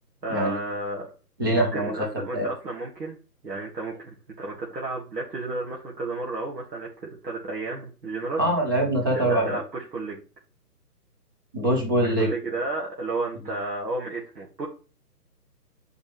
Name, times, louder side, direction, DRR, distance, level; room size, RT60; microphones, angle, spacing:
voice 1, 0.2-1.1 1.5-3.2 3.4-8.5 9.0-10.2 12.0-14.7, right 2 dB, 80° right, -3 dB, 2.0 m, -32 dB
voice 2, 1.4-2.1 2.3-2.5 8.4-9.6 11.5-12.3, right 1 dB, 15° right, 1 dB, 0.7 m, -23 dB
8.5 x 5.2 x 3.2 m, 0.36 s
hypercardioid pair, 155°, 49 cm